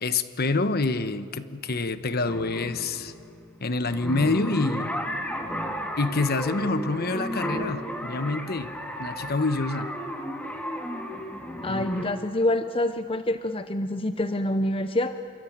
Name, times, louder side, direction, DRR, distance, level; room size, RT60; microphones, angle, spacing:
voice 1, 0.0-3.1 3.6-4.9 6.0-8.7 9.0-9.9 11.7-11.9, left 3 dB, 50° left, 11 dB, 1.1 m, -27 dB
sound 1, 2.3-12.1, equal, 5° left, 2.2 m, -33 dB
voice 2, 11.6-15.2, left 1 dB, 25° left, 9 dB, 0.7 m, -26 dB
27.0 x 23.5 x 9.4 m, 2.4 s
head